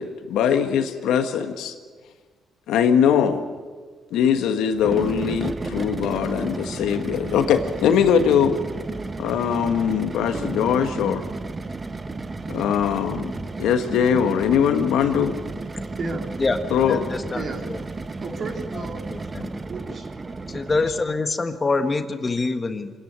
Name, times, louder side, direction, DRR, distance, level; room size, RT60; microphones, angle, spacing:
voice 1, 0.0-1.7 2.7-3.4 4.1-8.6 9.2-11.2 12.5-13.3 13.6-15.4 16.7-17.0, left 8 dB, 85° left, 7 dB, 1.5 m, -21 dB
sound 1, 4.7-21.2, right 3 dB, 30° right, 0.9 m, -33 dB
voice 2, 10.3-10.7 16.0-16.3 17.3-17.6 18.2-19.0 19.7-20.1, right 3 dB, 50° right, 2 dB, 3.4 m, -33 dB
voice 3, 16.9-17.8 18.7-18.8 19.1-19.4 20.5-22.9, left 3 dB, 30° left, 8 dB, 1.4 m, -25 dB
26.0 x 10.5 x 9.7 m, 1.5 s
cardioid pair, 90°, 0 cm